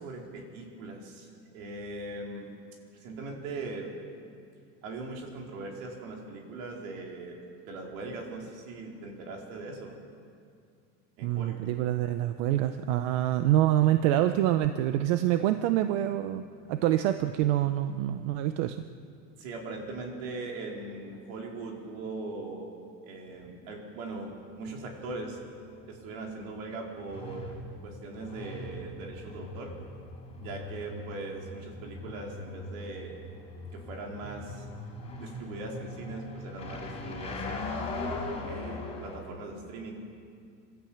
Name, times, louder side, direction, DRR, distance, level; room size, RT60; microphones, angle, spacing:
voice 1, 0.0-2.5 2.9-3.9 4.8-7.4 7.6-10.0 11.2-11.7 19.4-22.7 23.0-25.4 25.9-27.5 27.8-29.7 30.4-33.1 33.7-34.7 35.2-37.8 38.4-40.0, right 3 dB, 85° right, 0 dB, 4.6 m, -40 dB
voice 2, 11.2-16.4 16.7-18.8, right 13 dB, 70° right, 9 dB, 0.9 m, -26 dB
sound 1, 24.2-39.2, left 2 dB, 15° left, 4.7 m, -40 dB
27.5 x 13.0 x 8.8 m, 2.4 s
cardioid pair, 165°, 39 cm